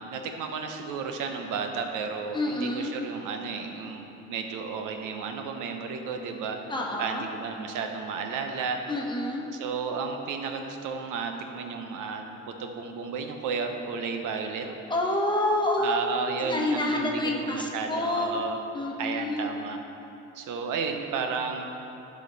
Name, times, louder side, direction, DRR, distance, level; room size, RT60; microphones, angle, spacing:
voice 1, 0.0-6.6 7.0-8.8 9.5-14.7 15.8-18.6 19.0-19.8 20.3-21.7, right 5 dB, 90° right, 5 dB, 0.8 m, -33 dB
voice 2, 2.3-2.9 6.7-7.2 8.9-9.4 14.9-15.9 16.3-18.4 18.7-19.5, left 1 dB, 15° left, -1 dB, 1.1 m, -28 dB
11.0 x 5.3 x 3.9 m, 2.9 s
cardioid pair, 90°, 30 cm